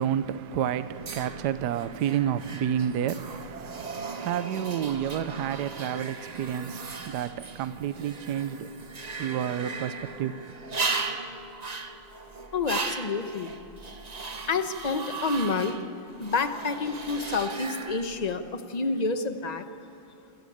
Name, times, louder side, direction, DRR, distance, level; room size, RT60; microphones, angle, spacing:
voice 1, 0.0-8.7 9.2-10.4, right 9 dB, 65° right, 1.1 m, -30 dB
sound 1, 0.9-18.3, right 4 dB, 35° right, 0.6 m, -37 dB
voice 2, 12.5-13.5 14.5-15.8 16.2-19.6, left 4 dB, 30° left, 0.8 m, -28 dB
27.0 x 15.5 x 8.7 m
omnidirectional pair, 2.2 m